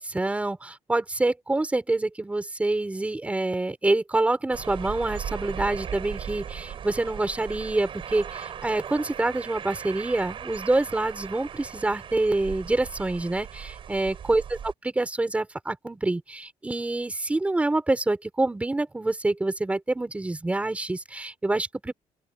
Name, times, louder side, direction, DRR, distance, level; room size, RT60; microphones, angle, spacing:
voice 1, 0.0-14.4 14.8-21.9, right 2 dB, 10° right, 4.6 m, -26 dB
sound 1, 4.5-14.7, right 8 dB, 50° right, 6.7 m, -38 dB
open air
cardioid pair, 150°, 12 cm